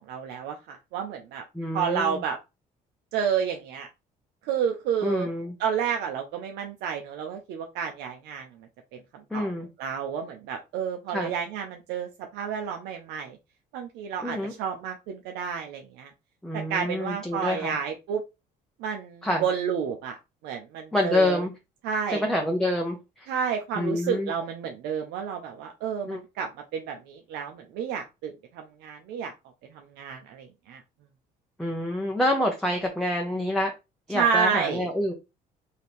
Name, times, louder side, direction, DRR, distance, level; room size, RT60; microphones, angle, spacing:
voice 1, 0.1-1.4 1.7-2.4 3.1-3.9 4.4-5.3 5.6-8.5 9.3-9.5 9.8-13.4 13.7-16.1 16.5-18.2 18.8-20.1 20.4-21.4 21.8-22.2 23.3-29.3 29.7-30.8 34.1-34.9, right 7 dB, 85° right, 0.6 m, -30 dB
voice 2, 1.5-2.2 5.0-5.5 9.3-9.7 11.1-11.3 14.2-14.5 16.4-17.7 19.2-19.4 20.9-21.5 22.1-23.3 23.8-24.3 26.1-26.2 31.6-33.7 34.1-35.1, left 1 dB, 5° left, 0.8 m, -27 dB
3.3 x 2.8 x 4.2 m
cardioid pair, 110°, 17 cm